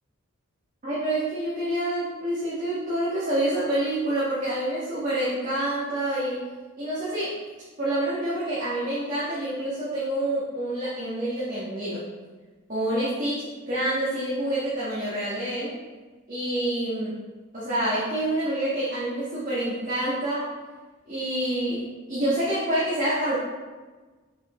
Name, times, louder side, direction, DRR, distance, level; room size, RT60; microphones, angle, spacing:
voice 1, 0.8-6.5 6.8-7.4 7.8-12.0 12.7-15.7 16.3-17.2 17.5-20.5 21.1-23.3, right 1 dB, 35° right, -10 dB, 1.7 m, -27 dB
6.9 x 6.1 x 3.2 m, 1.3 s
head